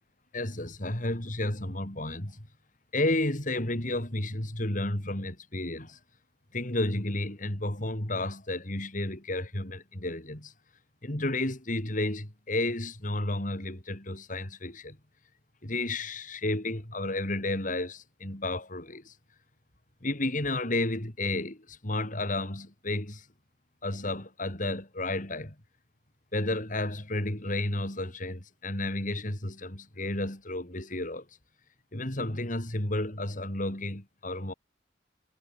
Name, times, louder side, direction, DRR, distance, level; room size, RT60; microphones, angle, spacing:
voice 1, 0.3-2.5 2.9-6.0 6.5-10.5 11.0-15.0 15.6-19.1 20.0-23.3 23.8-25.6 26.3-31.3 31.9-34.5, left 2 dB, 45° left, 3.8 m, -32 dB
head